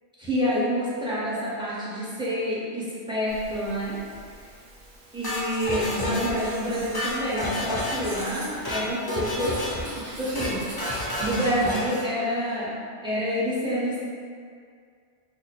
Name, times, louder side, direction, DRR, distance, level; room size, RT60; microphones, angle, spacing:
voice 1, 0.2-4.0 5.1-9.6 9.9-10.8 11.2-12.7 13.0-14.0, equal, 5° right, -9 dB, 0.7 m, -28 dB
Writing, 3.3-11.7, right 1 dB, 60° right, 0.9 m, -43 dB
sound 1, 5.2-6.5 6.8-8.2 8.5-8.8 9.1-9.9 10.2-10.5 10.8-12.1, left 1 dB, 35° left, 0.4 m, -30 dB
2.9 x 2.1 x 4.1 m, 2.2 s
omnidirectional pair, 1.1 m